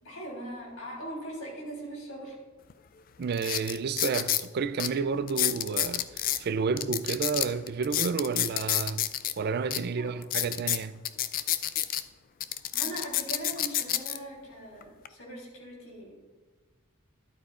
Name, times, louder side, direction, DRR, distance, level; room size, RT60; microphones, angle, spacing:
voice 1, 0.0-2.4 10.0-10.1 12.7-16.1, right 1 dB, 80° left, 3.6 m, -40 dB
sound 1, 2.7-2.8 3.3-4.5 4.8-4.9 5.3-6.4 6.8-9.3 9.7-9.8 10.2-12.0 12.4-14.2 14.8-15.1, left 12 dB, 45° left, 0.4 m, -29 dB
voice 2, 3.2-6.1 6.4-9.0 9.4-11.0, right 5 dB, 50° right, 0.4 m, -30 dB
12.5 x 11.5 x 2.5 m
head